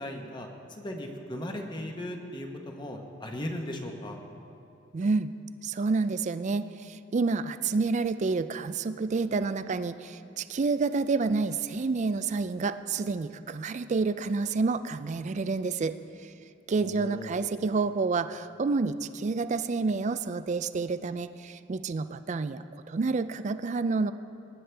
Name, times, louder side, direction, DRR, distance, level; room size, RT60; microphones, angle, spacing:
voice 1, 0.0-4.2 16.8-17.4, left 1 dB, 25° left, 3 dB, 1.0 m, -37 dB
voice 2, 4.9-5.3 5.6-15.9 16.7-24.1, right 4 dB, 35° right, 12 dB, 0.3 m, -29 dB
19.5 x 9.6 x 3.4 m, 2.6 s
head